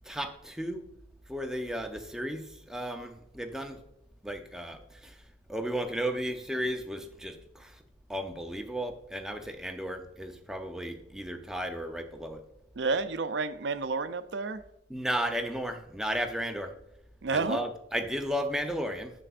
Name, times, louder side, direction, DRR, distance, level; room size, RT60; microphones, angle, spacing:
voice 1, 0.1-0.8 1.3-3.8 4.2-5.2 5.5-7.8 8.1-12.4 14.9-16.7 17.3-19.1, equal, 5° right, 0.6 m, -34 dB
voice 2, 12.8-14.6 17.2-17.6, right 4 dB, 65° right, 0.5 m, -30 dB
7.6 x 6.8 x 2.5 m
head